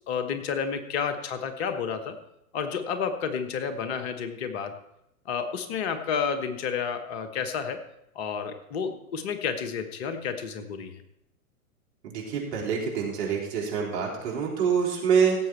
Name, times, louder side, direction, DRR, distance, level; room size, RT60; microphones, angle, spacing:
voice 1, 0.1-2.2 2.5-4.7 5.2-7.8 8.1-11.0, left 6 dB, 45° left, 7 dB, 1.3 m, -30 dB
voice 2, 12.0-15.3, right 6 dB, 45° right, -2 dB, 4.1 m, -26 dB
16.5 x 7.9 x 4.5 m, 0.82 s
figure-of-eight pair, 110°, 43 cm